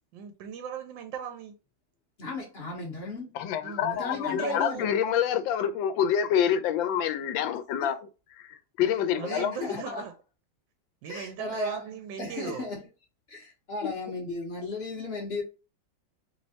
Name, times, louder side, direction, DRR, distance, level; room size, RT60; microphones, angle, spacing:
voice 1, 0.1-1.5 3.6-3.8 4.3-4.9 9.2-10.1 11.0-12.7, right 8 dB, 85° right, 1.3 m, -38 dB
voice 2, 2.2-3.3 3.8-4.9 9.3-10.0 11.0-11.9 12.2-12.8 13.3-15.4, left 2 dB, 45° left, 0.8 m, -35 dB
voice 3, 3.3-8.0 8.4-9.5 13.8-13.9, left 9 dB, 85° left, 1.3 m, -27 dB
3.3 x 3.1 x 2.7 m
omnidirectional pair, 2.0 m